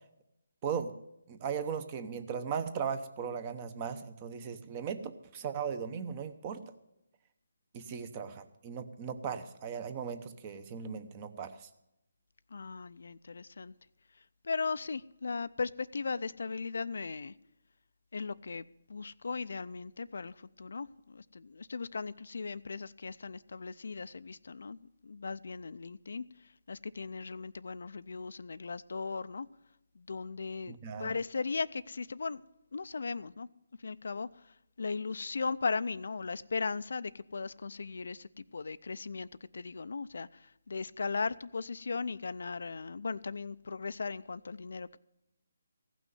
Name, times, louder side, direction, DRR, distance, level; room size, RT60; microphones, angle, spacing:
voice 1, 1.3-6.6 7.7-11.7 30.7-31.1, right 7 dB, 25° right, 0.9 m, -37 dB
voice 2, 12.5-13.7 14.4-17.3 18.1-18.6 18.9-24.8 25.0-26.2 26.7-29.5 30.0-32.4 32.7-33.5 33.8-34.3 34.8-39.3 39.5-40.3 40.7-45.0, left 4 dB, 70° left, 0.4 m, -37 dB
15.5 x 6.2 x 9.3 m
hypercardioid pair, 160°, 0 cm